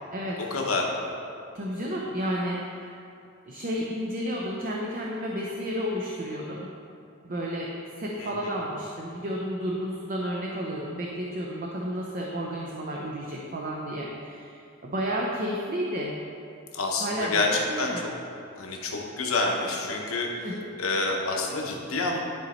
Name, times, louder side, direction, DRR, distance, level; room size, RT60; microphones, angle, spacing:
voice 1, 0.5-0.9 8.2-8.5 16.7-18.1 18.6-20.3 20.8-22.2, left 3 dB, 80° left, 0 dB, 1.1 m, -28 dB
voice 2, 1.5-3.0 3.5-6.7 7.2-16.1 17.0-18.0 20.4-20.7, equal, 40° right, -2 dB, 0.6 m, -32 dB
11.0 x 4.0 x 4.4 m, 2.6 s
head